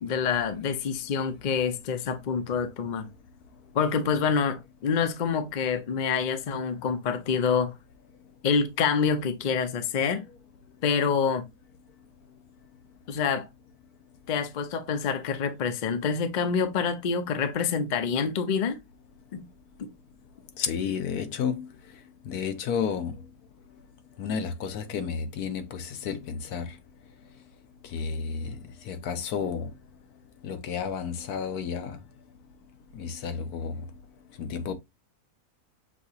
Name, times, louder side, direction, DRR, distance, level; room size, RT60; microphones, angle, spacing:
voice 1, 0.0-3.1 3.7-7.7 8.4-10.3 10.8-11.4 13.1-13.5 14.3-18.8 19.3-19.5 19.8-19.9, left 6 dB, 50° left, 0.6 m, -27 dB
voice 2, 20.6-21.7 22.3-23.2 24.2-26.7 27.9-28.6 28.9-29.7 30.4-32.0 32.9-33.8 34.4-34.8, left 6 dB, 80° left, 1.2 m, -31 dB
6.4 x 2.8 x 2.7 m
omnidirectional pair, 1.6 m